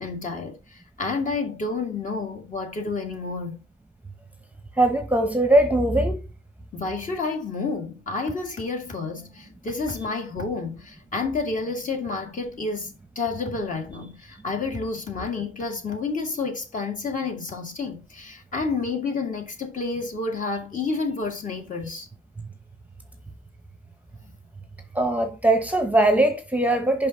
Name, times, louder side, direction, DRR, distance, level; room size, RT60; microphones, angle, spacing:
voice 1, 0.0-3.6 6.7-22.1 24.2-24.3, left 4 dB, 40° left, 1.8 m, -30 dB
voice 2, 4.8-6.2 22.4-22.5 24.9-27.1, right 1 dB, 5° right, 0.9 m, -21 dB
5.4 x 5.3 x 3.9 m
cardioid pair, 90°, 20 cm